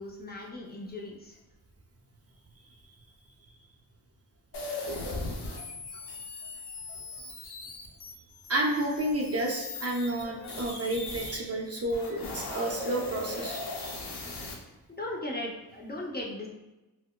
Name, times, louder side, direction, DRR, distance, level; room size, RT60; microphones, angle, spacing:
voice 1, 0.0-1.4 15.0-16.5, left 1 dB, 25° left, -2 dB, 0.6 m, -37 dB
sound 1, 4.5-11.4 11.8-14.5, left 2 dB, 85° left, 0.7 m, -38 dB
voice 2, 4.9-5.6 8.5-14.0, right 1 dB, 40° right, 0 dB, 0.5 m, -31 dB
4.4 x 2.0 x 2.2 m, 1.0 s
cardioid pair, 70°, 39 cm